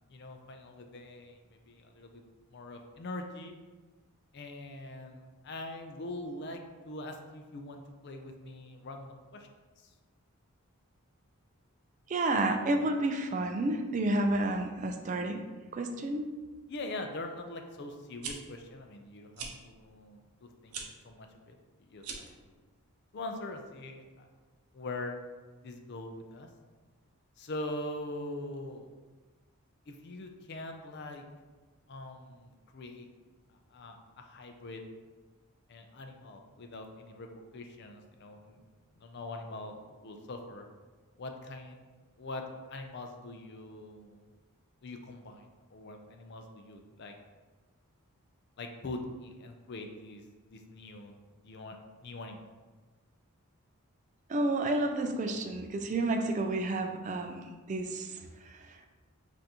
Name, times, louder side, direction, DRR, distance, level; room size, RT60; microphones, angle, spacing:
voice 1, 0.1-2.2 2.5-3.6 4.3-9.5 9.8-9.9 16.7-21.5 21.9-22.5 23.1-24.3 24.7-25.2 25.6-26.5 27.4-28.9 29.9-31.2 31.9-33.1 33.5-34.8 35.7-37.3 37.5-38.6 39.0-40.6 41.2-41.8 42.2-42.4 42.7-44.3 44.8-47.1 48.6-50.2 50.5-51.2 51.4-51.8 52.0-52.5, left 2 dB, 50° left, 4 dB, 0.4 m, -43 dB
voice 2, 12.1-15.4 15.7-16.3 54.3-58.1, right 2 dB, 35° right, 5 dB, 0.3 m, -30 dB
sound 1, 18.2-18.3 19.3-19.5 20.7-20.9 22.0-22.4, right 5 dB, 90° right, 0.6 m, -40 dB
5.5 x 2.6 x 2.9 m, 1.3 s
head